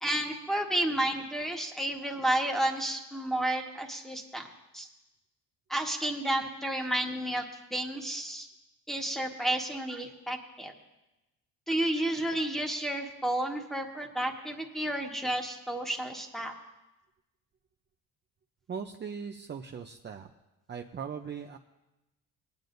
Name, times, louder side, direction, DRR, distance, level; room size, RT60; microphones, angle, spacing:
voice 1, 0.0-4.5 4.7-4.9 5.7-7.4 7.7-8.5 8.9-10.7 11.7-16.5, right 1 dB, ahead, 2 dB, 1.5 m, -31 dB
voice 2, 18.7-20.3 20.7-21.6, right 6 dB, 30° right, 4 dB, 0.6 m, -39 dB
18.5 x 9.4 x 2.6 m, 1.0 s
cardioid pair, 85°, 39 cm